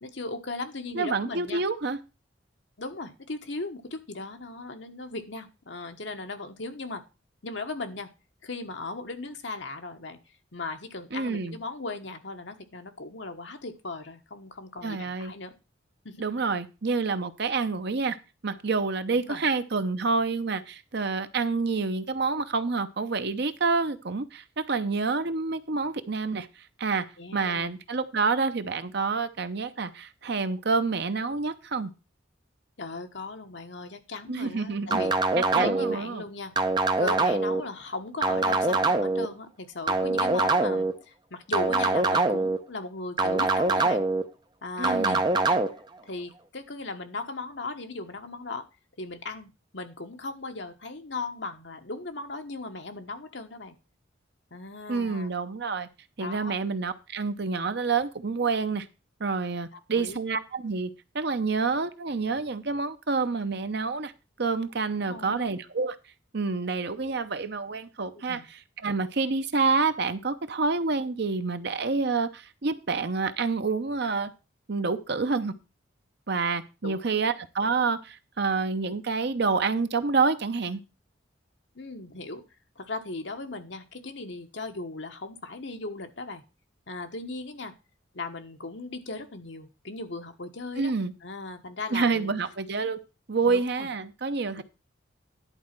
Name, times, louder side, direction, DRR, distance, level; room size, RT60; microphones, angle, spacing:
voice 1, 0.0-1.6 2.8-7.0 7.4-8.1 8.4-10.2 10.5-15.5 16.0-16.2 19.1-19.4 27.2-27.7 32.8-35.1 35.5-36.5 37.0-44.0 44.6-45.2 45.5-45.6 46.0-48.6 49.0-53.8 54.5-55.3 56.2-56.5 59.7-60.2 65.0-65.5 68.3-68.5 76.8-77.2 81.7-82.4 82.8-86.4 86.9-87.7 88.1-90.9 91.2-92.3 93.4-93.9 94.6-94.7, left 3 dB, 65° left, 1.3 m, -37 dB
voice 2, 0.9-2.0 11.1-11.6 14.8-15.3 16.2-18.2 18.4-26.5 26.8-27.1 27.3-31.9 34.3-35.0 35.3-36.2 44.8-45.2 54.9-55.9 56.2-58.9 59.2-64.1 64.4-66.0 66.3-74.3 74.7-75.5 76.3-80.8 90.8-91.1 91.9-93.0 93.3-94.6, right 4 dB, 55° right, 0.8 m, -28 dB
sound 1, 34.9-36.0 36.6-37.6 38.2-39.3 39.9-40.9 41.5-42.6 43.2-44.2 44.8-45.7, right 3 dB, 25° right, 0.8 m, -24 dB
11.0 x 4.2 x 7.5 m
head